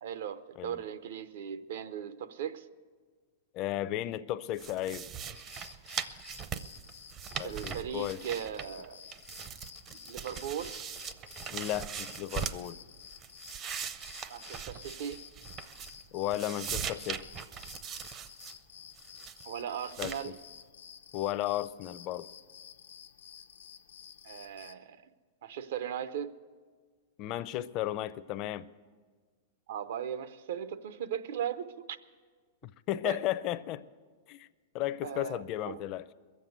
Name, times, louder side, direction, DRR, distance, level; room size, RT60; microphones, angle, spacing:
voice 1, 0.0-2.7 7.4-9.0 10.0-10.8 14.3-15.2 19.4-20.4 24.2-25.0 25.4-26.3 29.7-32.0 33.0-33.2 35.0-35.8, right 9 dB, 70° right, 0.7 m, -38 dB
voice 2, 3.5-5.1 7.4-8.2 11.5-12.8 16.1-17.2 20.0-20.1 21.1-22.3 27.2-28.7 32.9-33.8 34.3-34.5 34.7-36.1, left 13 dB, 40° left, 0.5 m, -34 dB
sound 1, 4.6-8.9 9.1-12.7 13.1-16.0 16.3-18.5 19.0-19.4 19.9-20.2, right 8 dB, 30° right, 0.6 m, -40 dB
sound 2, 5.3-24.7, left 8 dB, 90° left, 0.6 m, -52 dB
21.5 x 7.6 x 8.0 m
hypercardioid pair, 135°, 0 cm